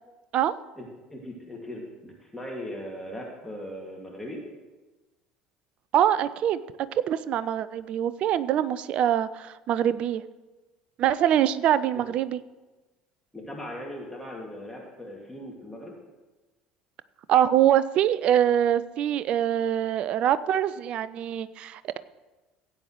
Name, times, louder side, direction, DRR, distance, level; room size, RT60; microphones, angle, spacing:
voice 1, 1.1-4.4 13.3-15.9, left 1 dB, 5° left, -2 dB, 2.2 m, -39 dB
voice 2, 5.9-6.6 6.9-10.2 11.0-12.4 17.3-22.0, right 10 dB, 45° right, 16 dB, 0.4 m, -24 dB
16.5 x 8.6 x 3.2 m, 1.2 s
figure-of-eight pair, 60°, 3 cm